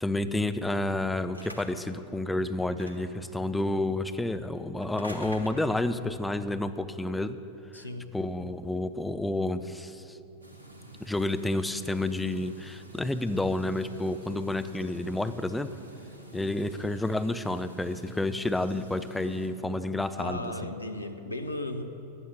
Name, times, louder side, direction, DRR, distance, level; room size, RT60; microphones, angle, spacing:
voice 1, 0.0-7.4 8.1-10.2 11.0-15.7 16.3-20.7, left 2 dB, 5° left, 10 dB, 0.6 m, -30 dB
sound 1, 1.3-2.0 2.7-3.2 4.8-5.9, left 1 dB, 90° right, 1.2 m, -44 dB
voice 2, 7.7-8.1 16.7-16.8 20.2-21.8, left 1 dB, 80° left, 8 dB, 0.9 m, -36 dB
sound 2, 10.4-19.5, right 1 dB, 75° right, 2.1 m, -49 dB
15.0 x 11.0 x 5.5 m, 2.9 s
figure-of-eight pair, 90°, 0 cm